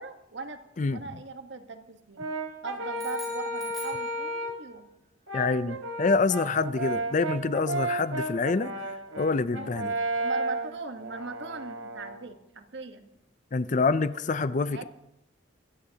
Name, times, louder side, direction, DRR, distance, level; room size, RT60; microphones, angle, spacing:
voice 1, 0.0-0.6 0.9-2.3 2.6-4.9 8.4-8.8 9.6-9.7 10.2-13.1 14.7-14.8, right 3 dB, 65° right, 7 dB, 1.2 m, -39 dB
Brass instrument, 2.2-4.7 5.3-12.2, right 2 dB, 90° right, 1.5 m, -33 dB
sound 1, 2.9-4.7, equal, ahead, 7.0 m, -45 dB
voice 2, 5.3-8.7 9.2-9.9 13.5-14.8, left 4 dB, 40° left, 15 dB, 0.4 m, -26 dB
23.5 x 15.5 x 2.8 m, 0.86 s
head